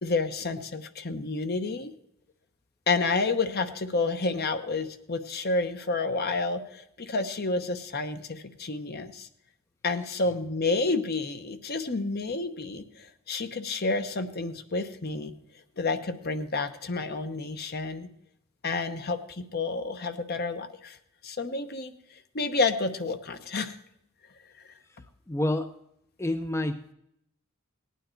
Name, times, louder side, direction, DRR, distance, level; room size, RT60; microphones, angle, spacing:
voice 1, 0.0-1.9 2.9-9.3 9.8-15.3 15.8-18.1 18.6-21.0 21.2-22.0 22.3-23.8, left 3 dB, 50° left, 9 dB, 1.0 m, -30 dB
voice 2, 25.3-25.7 26.2-26.9, left 1 dB, 15° left, 8 dB, 0.5 m, -28 dB
18.0 x 9.3 x 4.5 m, 0.77 s
head